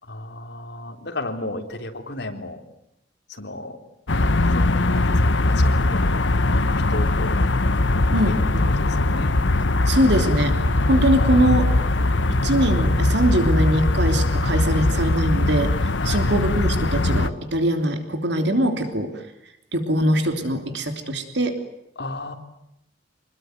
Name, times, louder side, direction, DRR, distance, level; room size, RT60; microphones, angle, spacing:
voice 1, 0.0-2.6 3.3-3.8 4.4-6.2 6.5-7.4 7.9-8.4 8.6-9.3 11.1-11.6 12.0-12.2 14.6-15.1 16.0-16.4 22.0-22.3, left 2 dB, 65° left, 4 dB, 3.7 m, -34 dB
sound 1, 4.1-17.3, left 2 dB, 85° left, 1.2 m, -20 dB
voice 2, 8.1-8.6 9.8-10.6 10.9-11.7 12.3-19.1 19.7-21.6, right 1 dB, 65° right, 6 dB, 3.2 m, -22 dB
27.0 x 21.0 x 9.4 m, 0.83 s
head